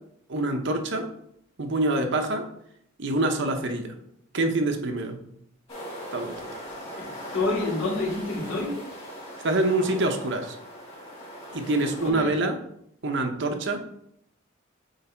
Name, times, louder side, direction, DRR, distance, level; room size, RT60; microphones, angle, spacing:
voice 1, 0.3-1.1 1.6-2.5 3.0-3.9 4.3-5.2 6.1-6.6 9.4-10.6 11.5-12.6 13.0-13.8, right 2 dB, 65° right, 5 dB, 0.8 m, -26 dB
sound 1, 5.7-12.1, equal, 30° left, 2.7 m, -39 dB
voice 2, 7.0-8.8 12.0-12.3, left 2 dB, 75° left, -5 dB, 2.5 m, -28 dB
7.9 x 3.3 x 4.5 m, 0.74 s
head